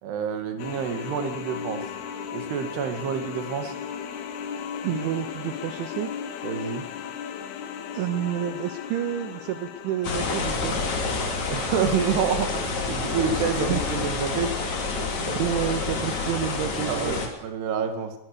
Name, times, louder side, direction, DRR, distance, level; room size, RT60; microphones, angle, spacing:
voice 1, 0.0-1.8 2.3-3.7 6.4-6.9 11.5-14.5 16.9-18.2, right 7 dB, 65° right, 7 dB, 3.9 m, -28 dB
sound 1, 0.6-11.4, left 7 dB, 65° left, 3.3 m, -36 dB
voice 2, 4.8-6.1 7.9-10.8 13.7-13.8 15.4-17.2, right 10 dB, 80° right, 9 dB, 3.4 m, -29 dB
sound 2, 10.0-17.3, left 3 dB, 45° left, 3.7 m, -28 dB
20.5 x 20.5 x 6.8 m, 0.89 s
omnidirectional pair, 5.3 m